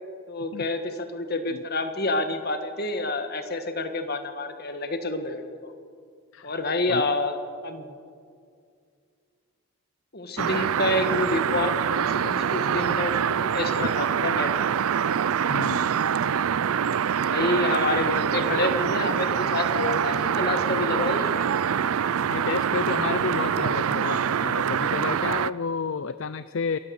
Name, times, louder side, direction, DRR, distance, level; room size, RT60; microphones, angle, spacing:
voice 1, 0.3-5.7 6.4-7.9 10.1-14.7 17.2-21.5 23.6-23.7, left 2 dB, 45° left, 7 dB, 1.6 m, -28 dB
sound 1, 10.4-25.5, right 8 dB, 75° right, 0.4 m, -25 dB
voice 2, 15.5-15.8 22.3-26.8, left 5 dB, 60° left, 13 dB, 0.5 m, -30 dB
27.0 x 14.5 x 7.0 m, 2.3 s
head